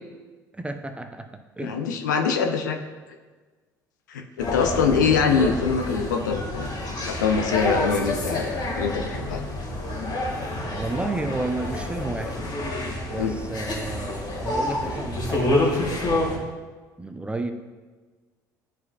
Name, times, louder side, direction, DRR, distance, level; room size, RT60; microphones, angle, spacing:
voice 1, 0.5-2.0 4.7-5.5 10.7-12.4 13.1-16.5 17.0-17.5, right 2 dB, 10° right, 7 dB, 0.7 m, -32 dB
voice 2, 1.6-2.8 4.1-9.4 13.2-13.3, left 6 dB, 80° left, 5 dB, 0.6 m, -24 dB
sound 1, 4.4-16.4, left 1 dB, 45° left, 1.8 m, -28 dB
10.5 x 4.7 x 2.4 m, 1.3 s
hypercardioid pair, 65°, 10 cm